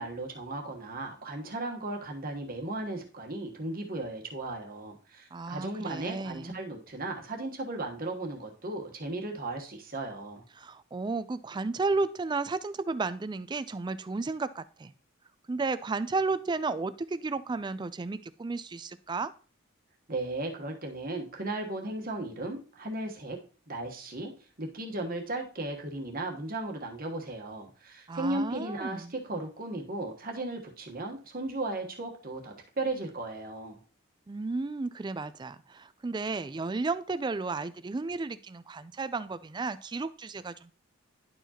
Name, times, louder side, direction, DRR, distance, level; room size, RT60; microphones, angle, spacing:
voice 1, 0.0-10.4 20.1-23.4 23.7-24.3 24.6-33.8, right 2 dB, 40° right, 2 dB, 1.2 m, -36 dB
voice 2, 5.3-6.6 10.6-14.9 15.5-19.3 28.1-29.1 34.3-40.7, right 3 dB, 20° right, 14 dB, 0.3 m, -33 dB
11.0 x 4.6 x 2.9 m, 0.39 s
head